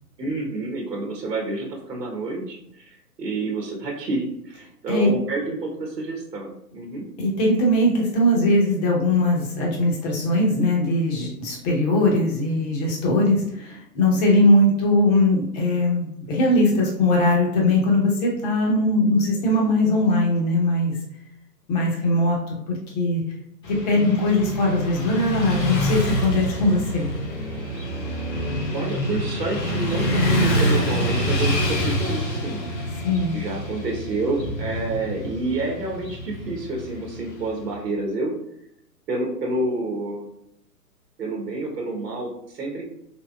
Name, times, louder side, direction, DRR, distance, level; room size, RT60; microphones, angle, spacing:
voice 1, 0.2-7.0 28.7-32.6 33.3-38.3 39.1-40.3 41.2-42.9, right 2 dB, 80° right, 0 dB, 1.1 m, -29 dB
voice 2, 7.2-21.0 21.7-23.2 23.7-27.1 33.0-33.3, left 1 dB, 25° left, -2 dB, 0.8 m, -20 dB
Motorcycle / Traffic noise roadway noise, 23.6-37.7, equal, 80° left, 1.3 m, -26 dB
3.7 x 2.9 x 2.3 m, 0.77 s
hypercardioid pair, 135°, 49 cm